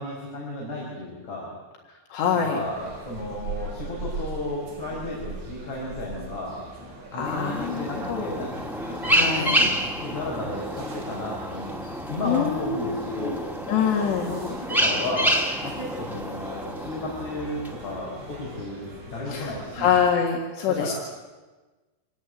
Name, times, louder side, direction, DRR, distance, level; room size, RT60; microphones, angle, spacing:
voice 1, 0.0-1.5 2.4-6.6 7.1-11.7 12.1-13.4 14.3-15.3 15.6-19.9 20.7-20.9, left 1 dB, 40° left, -4 dB, 6.6 m, -33 dB
voice 2, 2.1-2.6 7.1-8.3 9.0-9.6 11.8-12.0 12.3-13.4 13.7-14.3 19.3-20.9, left 7 dB, 75° left, 1 dB, 4.0 m, -25 dB
sound 1, 2.6-20.1, right 2 dB, 50° right, 7.2 m, -41 dB
sound 2, 7.2-18.2, equal, ahead, 0.9 m, -28 dB
26.0 x 18.0 x 9.4 m, 1.2 s
omnidirectional pair, 5.1 m